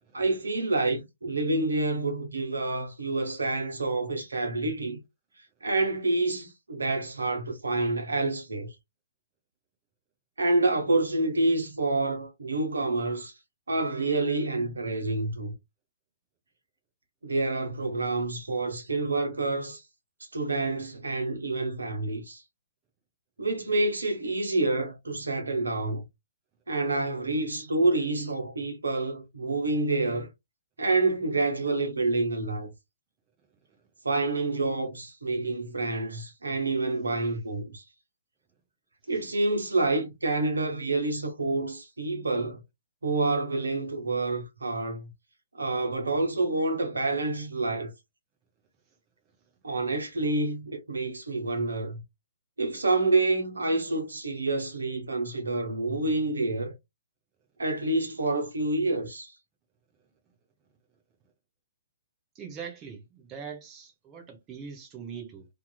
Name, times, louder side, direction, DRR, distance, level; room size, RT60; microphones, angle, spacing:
voice 1, 0.1-5.0 5.6-8.7 10.4-13.3 13.7-15.5 17.2-19.8 20.3-22.4 23.4-26.0 26.7-30.3 30.8-32.7 34.0-37.8 39.1-42.6 43.0-45.1 45.5-47.9 49.6-52.0 52.6-56.7 57.6-59.3, right 2 dB, 70° right, 0.8 m, -28 dB
voice 2, 62.3-65.5, right 7 dB, 20° right, 0.7 m, -42 dB
2.8 x 2.4 x 2.2 m
figure-of-eight pair, 125°, 0 cm